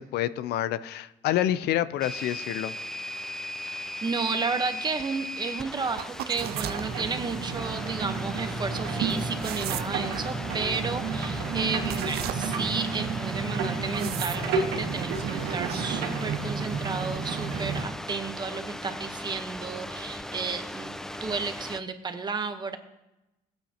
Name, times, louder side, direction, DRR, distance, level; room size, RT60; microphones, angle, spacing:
voice 1, 0.0-2.7, left 12 dB, 75° left, 15 dB, 0.5 m, -28 dB
sound 1, 2.0-21.8, left 1 dB, 5° left, 0.4 m, -38 dB
voice 2, 3.7-20.9 21.2-22.8, right 4 dB, 25° right, 8 dB, 1.0 m, -32 dB
sound 2, 6.0-6.9 9.1-10.2 11.9-12.8 13.9-14.5 14.9-15.9 16.3-16.4, right 13 dB, 65° right, 0.5 m, -36 dB
sound 3, 6.3-17.8, right 5 dB, 90° right, 1.9 m, -31 dB
16.5 x 9.0 x 2.8 m, 0.96 s
cardioid pair, 110°, 17 cm